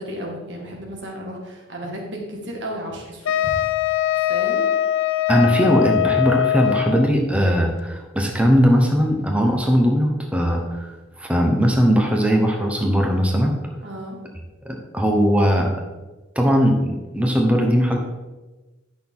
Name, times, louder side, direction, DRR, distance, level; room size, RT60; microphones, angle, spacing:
voice 1, 0.0-3.6 4.3-4.7 9.4-9.6 13.8-14.2, equal, 60° right, -1 dB, 2.0 m, -33 dB
Wind instrument woodwind instrument, 3.3-7.1, left 10 dB, 75° left, 0.3 m, -21 dB
voice 2, 5.3-13.5 14.6-15.7 16.3-18.0, equal, 5° right, 1 dB, 1.0 m, -19 dB
11.0 x 6.1 x 3.7 m, 1.1 s
head